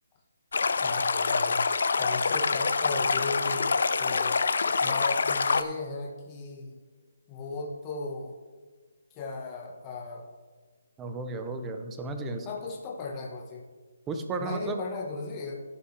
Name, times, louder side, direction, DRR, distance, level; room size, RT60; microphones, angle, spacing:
Stream, 0.5-5.6, left 4 dB, 60° left, 0.5 m, -26 dB
voice 1, 0.8-1.7 1.9-3.7 4.0-4.4 4.8-6.8 7.3-8.4 9.1-10.3 12.4-13.6 14.4-15.6, left 3 dB, 15° left, -3 dB, 1.3 m, -36 dB
voice 2, 11.0-12.5 14.1-14.8, right 3 dB, 10° right, 6 dB, 0.6 m, -34 dB
16.0 x 5.8 x 3.3 m, 1.5 s
hypercardioid pair, 175°, 0 cm